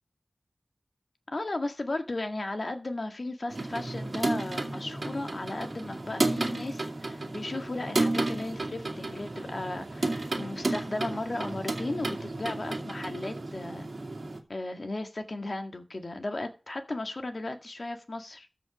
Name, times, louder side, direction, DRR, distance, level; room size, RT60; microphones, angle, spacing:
voice 1, 1.3-13.9 14.5-18.5, left 2 dB, 45° left, 1.9 m, -35 dB
sound 1, 3.5-14.4, right 2 dB, 50° right, 2.2 m, -32 dB
13.5 x 5.4 x 6.2 m
wide cardioid pair, 85°, 0 cm